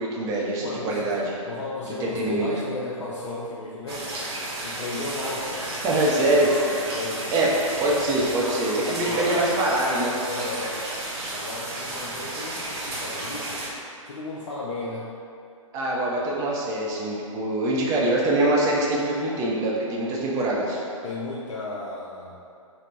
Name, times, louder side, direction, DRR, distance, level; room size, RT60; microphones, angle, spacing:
voice 1, 0.0-1.3 2.0-2.5 5.8-6.5 7.3-7.5 7.8-10.1 15.7-20.8, right 1 dB, 20° right, -4 dB, 0.5 m, -24 dB
voice 2, 0.6-4.3 4.6-5.7 6.9-7.3 8.8-9.5 10.3-10.8 11.3-13.6 14.1-15.1 21.0-22.4, left 2 dB, 60° left, -6 dB, 0.5 m, -34 dB
sound 1, 3.9-13.7, right 1 dB, 50° right, 0.8 m, -33 dB
3.8 x 2.0 x 3.3 m, 2.5 s
figure-of-eight pair, 120°, 17 cm